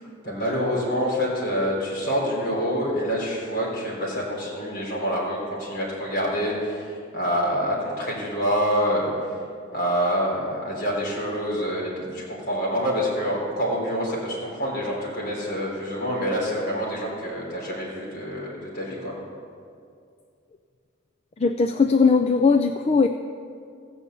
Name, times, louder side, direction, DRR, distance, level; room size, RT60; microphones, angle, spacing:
voice 1, 0.2-9.1 9.7-19.2, equal, 55° left, -4 dB, 3.9 m, -26 dB
voice 2, 21.4-23.1, left 4 dB, 30° left, 7 dB, 0.4 m, -19 dB
15.5 x 5.4 x 8.2 m, 2.3 s
head